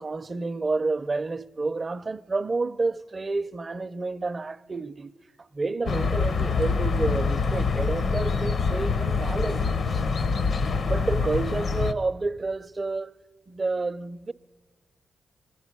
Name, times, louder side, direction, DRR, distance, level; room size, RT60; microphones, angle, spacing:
voice 1, 0.0-5.1 5.5-10.0 10.9-13.1 13.5-14.3, right 3 dB, 40° right, 0.5 m, -29 dB
sound 1, 5.9-11.9, left 4 dB, 65° left, 0.7 m, -25 dB
24.5 x 11.0 x 9.7 m
cardioid pair, 55°, 0 cm